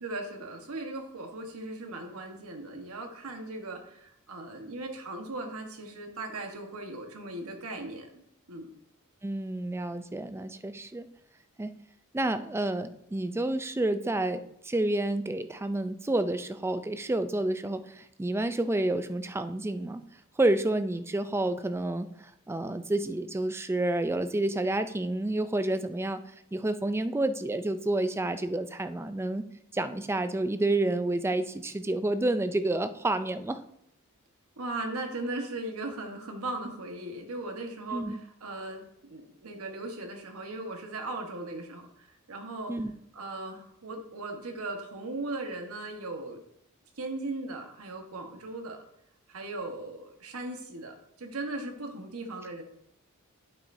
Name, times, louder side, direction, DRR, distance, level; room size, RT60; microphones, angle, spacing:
voice 1, 0.0-8.7 34.6-42.7 43.1-46.4 47.0-48.8 49.3-52.6, right 2 dB, 75° right, 3 dB, 1.4 m, -38 dB
voice 2, 9.2-11.1 11.6-11.7 12.1-20.0 20.4-26.2 26.5-29.4 29.7-33.6 37.9-38.2 42.7-42.9, right 2 dB, 10° right, 10 dB, 0.3 m, -29 dB
8.8 x 7.1 x 2.7 m, 0.75 s
head